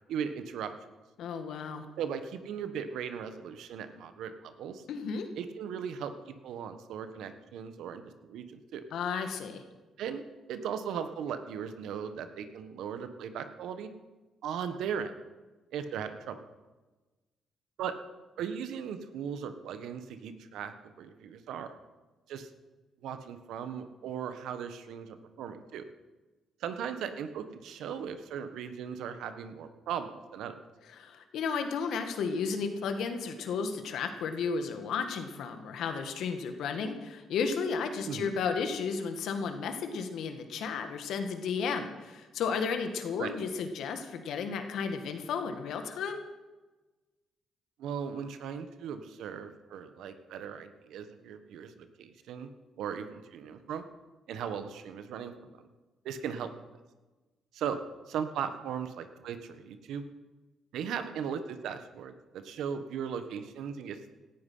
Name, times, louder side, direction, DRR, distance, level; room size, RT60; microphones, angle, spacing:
voice 1, 0.1-0.7 2.0-4.8 5.4-8.8 10.0-13.9 14.4-15.1 15.7-16.4 17.8-17.9 18.4-21.7 22.3-22.5 23.0-25.8 26.6-30.5 38.0-38.3 43.2-43.3 47.8-52.5 52.8-53.8 54.3-55.7 56.0-56.5 57.5-57.8 58.1-60.0 60.7-64.1, right 7 dB, 80° right, 9 dB, 1.4 m, -38 dB
voice 2, 1.2-1.8 4.9-5.3 8.9-9.6 30.9-46.2, left 5 dB, 75° left, 7 dB, 1.9 m, -33 dB
17.0 x 13.0 x 5.6 m, 1.2 s
cardioid pair, 90°, 0 cm